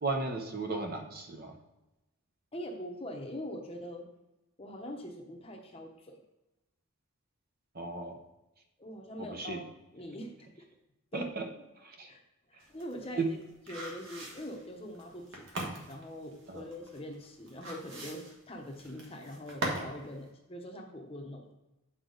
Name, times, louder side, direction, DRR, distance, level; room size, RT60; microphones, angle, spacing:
voice 1, 0.0-1.5 7.7-8.2 9.2-9.6 11.1-11.4 11.8-12.1 13.2-13.3 16.5-16.6, right 3 dB, 40° right, 3 dB, 0.8 m, -35 dB
voice 2, 2.5-4.0 4.6-6.2 8.8-10.7 11.1-11.3 12.1-12.2 12.5-13.4 13.7-15.5 15.9-21.5, equal, 25° left, 2 dB, 0.9 m, -43 dB
sound 1, 12.6-20.0 20.3-20.4, right 1 dB, 55° right, 1.5 m, -40 dB
8.4 x 4.6 x 3.9 m, 0.97 s
head